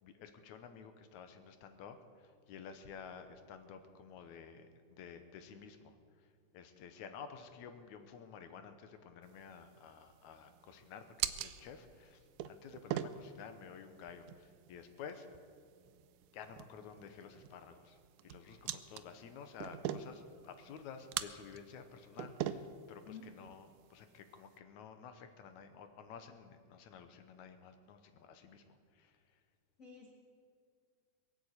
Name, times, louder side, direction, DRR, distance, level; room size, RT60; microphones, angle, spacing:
voice 1, 0.0-6.0 6.5-12.2 12.5-15.3 16.3-29.1, left 6 dB, 75° left, 8 dB, 2.3 m, -52 dB
sound 1, 9.2-24.6, right 11 dB, 85° right, 2.1 m, -45 dB
voice 2, 29.8-30.1, left 5 dB, 40° left, 0 dB, 1.2 m, -51 dB
22.0 x 7.8 x 8.2 m, 2.1 s
omnidirectional pair, 3.5 m